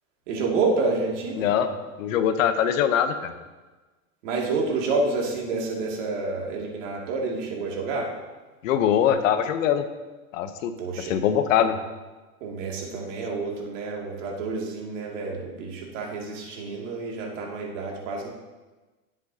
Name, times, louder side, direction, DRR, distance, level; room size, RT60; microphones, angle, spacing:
voice 1, 0.3-1.5 4.2-8.1 10.8-11.2 11.6-11.7 12.4-18.3, right 3 dB, 55° right, -1 dB, 2.5 m, -29 dB
voice 2, 1.4-1.7 2.0-3.3 8.6-9.8 10.3-11.8, left 9 dB, 60° left, 9 dB, 1.0 m, -23 dB
17.5 x 7.5 x 2.8 m, 1.2 s
supercardioid pair, 160°, 43 cm